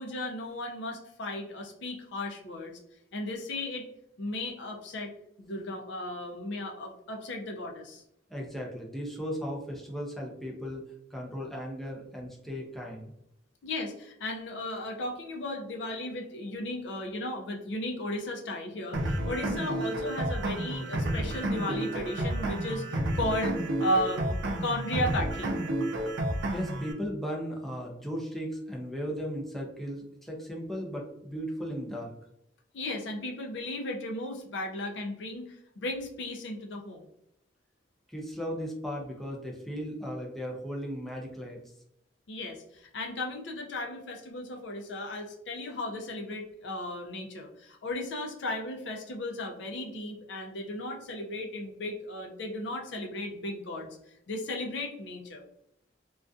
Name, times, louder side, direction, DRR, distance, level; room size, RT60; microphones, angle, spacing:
voice 1, 0.0-2.7 3.1-3.9 4.2-5.1 5.4-8.0 13.6-24.4 24.6-25.5 32.7-37.1 42.3-53.9 54.3-55.4, left 1 dB, 65° left, 2 dB, 0.5 m, -35 dB
voice 2, 8.3-10.8 11.1-13.1 26.5-32.1 38.1-41.6, equal, ahead, -2 dB, 0.4 m, -36 dB
sound 1, 18.9-26.9, right 1 dB, 75° right, 0.5 m, -31 dB
2.5 x 2.3 x 2.3 m, 0.76 s
head